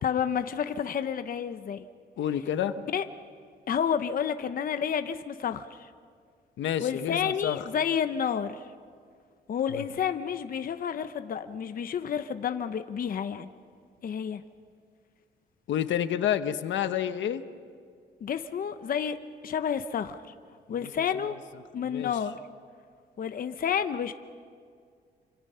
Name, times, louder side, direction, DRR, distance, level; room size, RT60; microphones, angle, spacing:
voice 1, 0.0-1.9 2.9-3.0 3.7-5.9 6.8-8.6 9.5-13.5 14.0-14.4 18.2-19.2 19.4-20.2 20.7-21.4 21.7-22.4 23.2-24.1, left 8 dB, 50° left, 9 dB, 0.9 m, -30 dB
voice 2, 2.2-2.7 6.6-7.6 9.7-9.8 15.7-17.4 20.7-21.3 21.9-22.1, left 10 dB, 80° left, 10 dB, 1.1 m, -29 dB
28.5 x 26.0 x 5.7 m, 2.1 s
cardioid pair, 125°, 19 cm